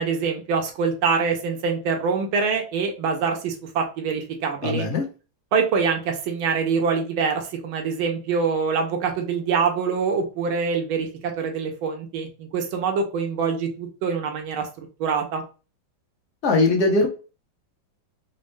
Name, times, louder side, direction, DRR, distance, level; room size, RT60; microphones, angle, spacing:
voice 1, 0.0-4.9 5.5-15.4, right 5 dB, 90° right, 3 dB, 1.6 m, -25 dB
voice 2, 4.6-5.0 16.4-17.1, left 3 dB, 45° left, 1 dB, 1.0 m, -20 dB
4.1 x 2.1 x 3.2 m, 0.33 s
omnidirectional pair, 2.2 m